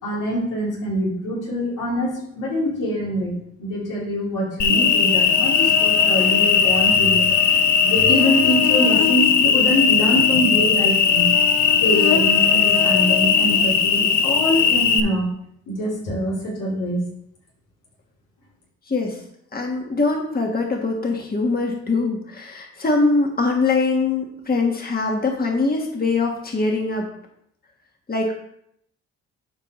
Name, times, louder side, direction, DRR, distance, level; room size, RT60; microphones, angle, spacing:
voice 1, 0.0-7.4 7.8-11.3 11.8-15.3 15.7-17.0, equal, 85° left, -5 dB, 3.0 m, -24 dB
Cricket, 4.6-15.0, left 7 dB, 70° left, 0.8 m, -17 dB
voice 2, 18.9-19.2 19.5-27.1 28.1-28.3, left 3 dB, 30° left, 1 dB, 1.5 m, -22 dB
11.0 x 4.5 x 3.1 m, 0.73 s
supercardioid pair, 65°, 31 cm